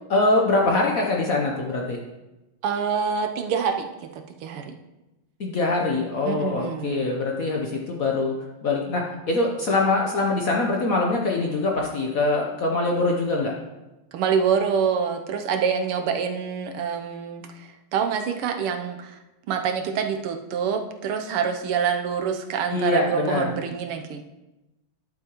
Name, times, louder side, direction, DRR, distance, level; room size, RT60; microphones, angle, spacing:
voice 1, 0.1-2.0 5.4-8.3 8.6-13.5 22.7-23.5, left 2 dB, 55° left, 0 dB, 1.0 m, -23 dB
voice 2, 2.6-3.8 4.4-4.7 6.2-7.0 14.1-19.2 19.5-24.2, right 7 dB, 85° right, 5 dB, 1.7 m, -26 dB
11.5 x 7.4 x 3.0 m, 1.0 s
omnidirectional pair, 2.4 m